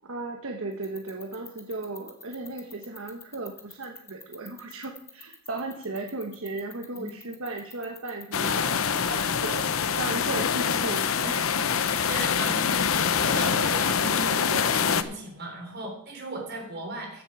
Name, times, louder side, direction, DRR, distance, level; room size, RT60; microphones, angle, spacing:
voice 1, 0.0-9.6 10.0-11.5, right 2 dB, 70° right, 3 dB, 1.1 m, -36 dB
sound 1, 0.7-13.6, left 5 dB, 10° left, 1.3 m, -45 dB
sound 2, 8.3-15.0, left 7 dB, 70° left, 0.7 m, -25 dB
voice 2, 11.8-17.2, right 1 dB, 45° right, 1 dB, 3.6 m, -37 dB
15.0 x 7.3 x 4.8 m, 0.76 s
head